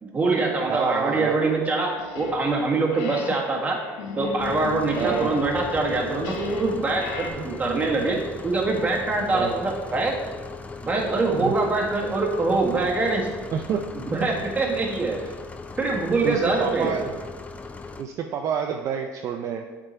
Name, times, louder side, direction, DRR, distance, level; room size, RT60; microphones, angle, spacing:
voice 1, 0.0-3.8 4.2-10.2 10.8-13.3 14.0-15.2 15.8-17.0, right 3 dB, 20° right, -1 dB, 1.5 m, -24 dB
voice 2, 0.7-1.4 5.0-5.3 7.4-7.5 9.3-9.6 11.4-11.5 13.5-13.9 16.2-17.2 18.0-19.6, right 7 dB, 45° right, 4 dB, 0.5 m, -28 dB
sound 1, 1.5-2.6 2.9-7.3, left 3 dB, 80° left, 0.9 m, -36 dB
sound 2, 4.4-18.0, left 4 dB, 20° left, 0.5 m, -38 dB
7.9 x 3.8 x 4.4 m, 1.4 s
supercardioid pair, 105°, 7 cm